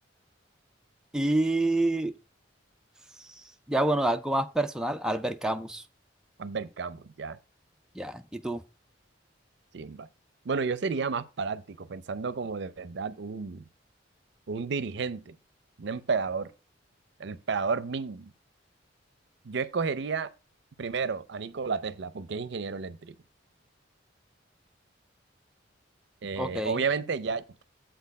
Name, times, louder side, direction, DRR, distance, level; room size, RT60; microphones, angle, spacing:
voice 1, 1.1-2.1 3.2-3.3 3.7-5.8 8.0-8.6 26.4-26.8, right 1 dB, 5° right, 0.3 m, -27 dB
voice 2, 6.4-7.4 9.7-10.1 10.4-13.6 14.5-15.3 15.8-16.5 17.2-18.3 19.4-20.3 20.8-23.2 26.2-27.6, right 5 dB, 65° right, 0.5 m, -32 dB
7.7 x 4.4 x 5.2 m
head